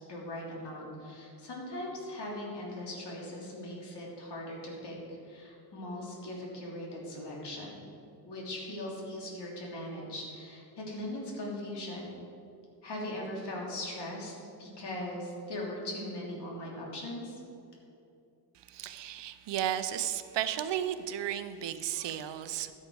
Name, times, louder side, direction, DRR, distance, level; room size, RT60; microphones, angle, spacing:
voice 1, 0.1-4.9 5.2-7.8 8.2-12.2 12.8-17.4, left 1 dB, 70° left, -3 dB, 3.1 m, -40 dB
voice 2, 18.5-22.7, right 11 dB, 75° right, 11 dB, 0.7 m, -34 dB
13.0 x 6.6 x 6.3 m, 2.6 s
wide cardioid pair, 145°, 42 cm